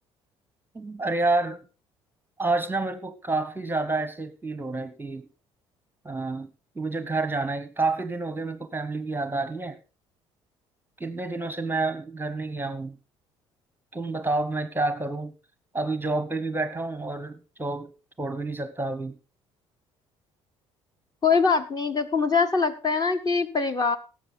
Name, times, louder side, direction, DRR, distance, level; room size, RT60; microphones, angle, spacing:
voice 1, 0.7-1.6 2.4-5.2 6.0-6.5 6.8-9.8 11.0-12.9 13.9-15.3 15.7-17.9 18.2-19.1, right 3 dB, 15° right, 1.0 m, -29 dB
voice 2, 21.2-24.0, left 5 dB, 25° left, 1.6 m, -23 dB
18.0 x 7.7 x 4.0 m
figure-of-eight pair, 55°, 15 cm